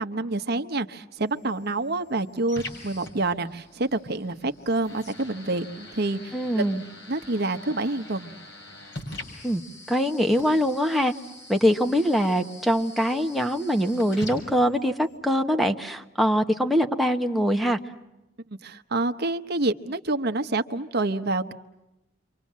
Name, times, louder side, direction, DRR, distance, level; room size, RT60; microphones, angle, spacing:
voice 1, 0.0-6.6 7.1-8.3 18.6-21.5, right 2 dB, 55° right, 8 dB, 1.0 m, -27 dB
sound 1, 1.2-15.2, left 1 dB, 60° left, 6.9 m, -44 dB
voice 2, 6.3-6.8 9.4-9.6 9.9-11.1 11.5-17.8, equal, ahead, 7 dB, 1.2 m, -23 dB
29.0 x 25.5 x 7.5 m, 0.95 s
head